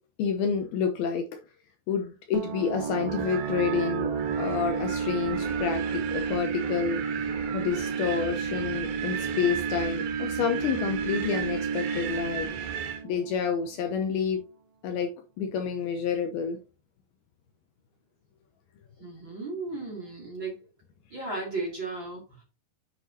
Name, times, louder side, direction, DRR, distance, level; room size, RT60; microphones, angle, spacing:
voice 1, 0.2-1.3 1.9-4.1 4.4-7.0 7.5-12.7 13.0-14.4 14.8-16.6 21.3-21.4, left 7 dB, 75° left, 2.4 m, -29 dB
sound 1, 2.3-13.8, right 5 dB, 55° right, 3.2 m, -32 dB
Wind, 3.1-13.0, right 8 dB, 75° right, 3.8 m, -36 dB
voice 2, 19.0-20.6 21.1-22.2, right 3 dB, 35° right, 2.3 m, -35 dB
8.4 x 7.9 x 2.7 m
omnidirectional pair, 5.1 m